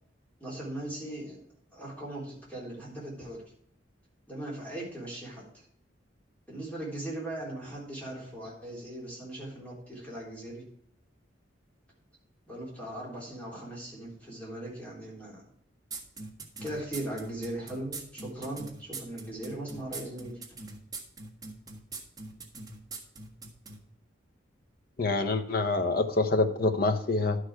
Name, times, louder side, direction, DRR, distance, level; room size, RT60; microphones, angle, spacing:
voice 1, 0.4-1.4 1.7-3.4 4.3-5.4 6.5-10.6 12.5-15.4 16.6-20.4, right 1 dB, 10° left, -5 dB, 3.6 m, -39 dB
sound 1, 15.9-23.8, right 3 dB, 20° right, 1.5 m, -41 dB
voice 2, 25.0-27.4, left 3 dB, 50° left, 7 dB, 1.0 m, -26 dB
11.5 x 6.6 x 4.8 m, 0.67 s
head